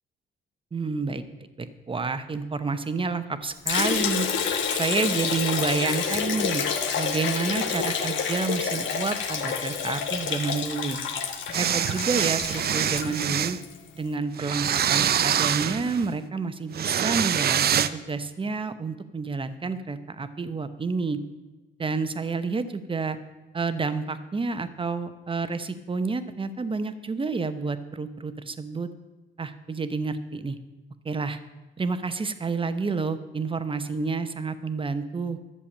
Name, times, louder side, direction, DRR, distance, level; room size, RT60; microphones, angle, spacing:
voice 1, 0.7-1.2 1.6-4.3 4.7-6.6 7.0-11.0 11.6-13.6 13.9-21.2 21.8-23.2 23.5-28.9 29.4-30.6 31.0-31.4 31.8-35.4, right 4 dB, 25° right, 11 dB, 1.0 m, -29 dB
Liquid, 3.7-13.8, left 6 dB, 70° left, 1.5 m, -28 dB
sound 1, 11.5-13.6 14.4-16.1 16.7-17.9, right 9 dB, 50° right, 0.6 m, -25 dB
11.5 x 7.0 x 8.6 m, 1.2 s
cardioid pair, 90°, 20 cm